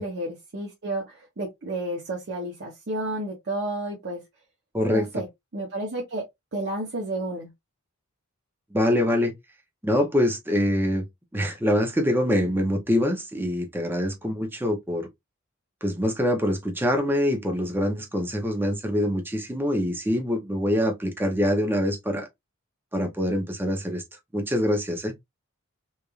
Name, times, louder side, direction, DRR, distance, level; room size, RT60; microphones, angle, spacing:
voice 1, 0.0-4.2 4.9-5.3 5.5-6.3 6.5-7.5, right 1 dB, 50° right, 0.8 m, -31 dB
voice 2, 4.7-5.1 8.7-9.3 9.8-11.0 11.3-15.1 15.8-22.3 22.9-24.0 24.3-25.1, equal, 10° right, 0.6 m, -24 dB
3.1 x 2.4 x 2.4 m
head